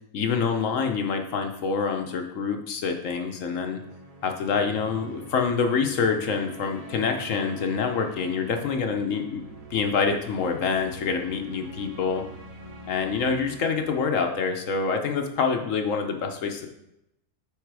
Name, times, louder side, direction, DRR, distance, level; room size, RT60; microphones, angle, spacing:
voice 1, 0.1-3.8 4.2-9.4 9.7-12.2 12.9-16.7, left 5 dB, 60° left, 4 dB, 1.0 m, -26 dB
sound 1, 3.0-14.1, right 3 dB, 35° right, 0.6 m, -45 dB
8.0 x 4.0 x 4.7 m, 0.84 s
omnidirectional pair, 1.7 m